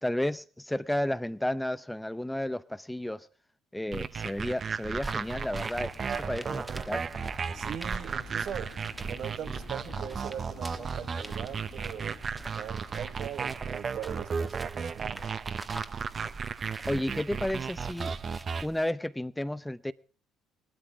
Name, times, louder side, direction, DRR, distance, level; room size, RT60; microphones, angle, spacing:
voice 1, 0.0-3.3 3.7-7.0 16.9-18.1 18.6-19.9, left 1 dB, 5° left, 0.6 m, -32 dB
sound 1, 3.9-18.7, right 6 dB, 40° right, 0.8 m, -35 dB
sound 2, 4.9-14.5, left 6 dB, 55° left, 3.1 m, -51 dB
sound 3, 5.0-18.9, right 2 dB, 15° right, 1.3 m, -45 dB
voice 2, 7.5-8.7 9.0-12.2 12.6-15.4, right 9 dB, 60° right, 1.1 m, -41 dB
18.5 x 12.5 x 4.6 m
supercardioid pair, 80°, 0 cm